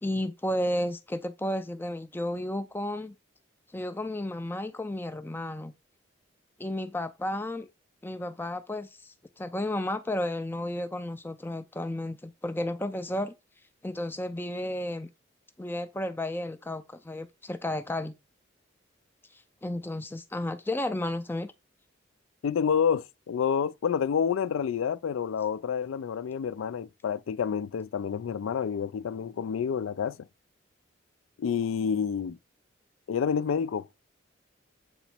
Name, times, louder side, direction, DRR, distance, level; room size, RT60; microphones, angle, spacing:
voice 1, 0.0-3.2 3.7-5.7 6.6-7.7 8.0-13.3 13.8-15.1 15.6-18.2 19.3-21.5, left 1 dB, 10° left, 0.3 m, -33 dB
voice 2, 22.4-30.2 31.4-32.4 33.1-33.9, left 7 dB, 90° left, 0.4 m, -28 dB
8.0 x 3.0 x 4.3 m
head